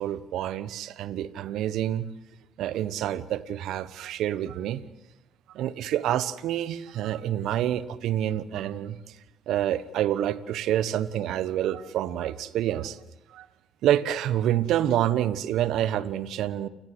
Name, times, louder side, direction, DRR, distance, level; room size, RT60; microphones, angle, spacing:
voice 1, 0.0-2.0 2.6-4.8 5.5-9.0 9.5-13.0 13.3-13.5 13.8-16.7, right 11 dB, 75° right, 17 dB, 1.2 m, -27 dB
29.0 x 19.5 x 8.0 m, 0.94 s
supercardioid pair, 60°, 0 cm